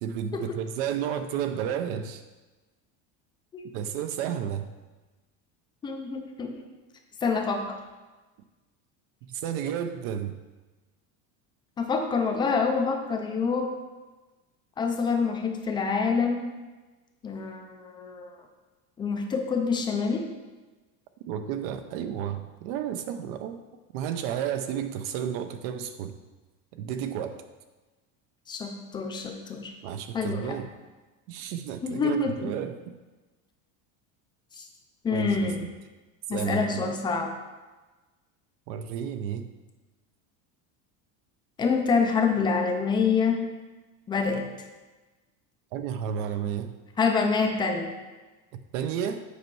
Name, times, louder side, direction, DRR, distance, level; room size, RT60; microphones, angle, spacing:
voice 1, 0.0-2.2 3.7-4.7 9.2-10.4 21.3-23.6 23.9-26.2 26.7-27.4 29.8-30.7 31.3-32.9 35.1-35.7 36.3-36.9 38.7-39.5 45.7-46.7 48.5-49.2, right 9 dB, 70° right, 8 dB, 0.6 m, -32 dB
voice 2, 5.8-6.6 7.2-7.8 11.8-13.7 14.8-16.5 17.2-18.3 19.0-20.2 28.5-29.7 30.1-30.5 31.8-32.5 34.5-34.6 35.0-35.6 36.3-37.3 41.6-43.5 44.1-44.5 47.0-47.9, left 5 dB, 15° left, 4 dB, 0.3 m, -26 dB
8.3 x 5.3 x 4.6 m, 1.2 s
cardioid pair, 180°, 38 cm